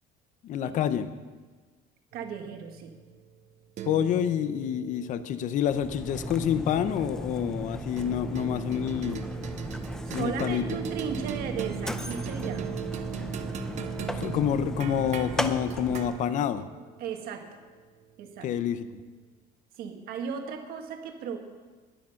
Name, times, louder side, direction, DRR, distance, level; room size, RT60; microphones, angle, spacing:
voice 1, 0.4-1.1 3.8-9.3 10.1-10.6 13.6-16.6 18.4-18.9, left 9 dB, 45° left, 12 dB, 0.6 m, -28 dB
sound 1, 2.1-6.8 8.0-18.4, right 9 dB, 40° right, 0.8 m, -40 dB
voice 2, 2.1-2.9 10.0-12.7 17.0-17.6 18.2-18.5 19.8-21.4, right 6 dB, 55° right, 5 dB, 1.7 m, -36 dB
Mechanisms, 5.6-16.3, equal, 5° left, 0.5 m, -36 dB
20.5 x 7.6 x 5.8 m, 1.4 s
cardioid pair, 165°, 18 cm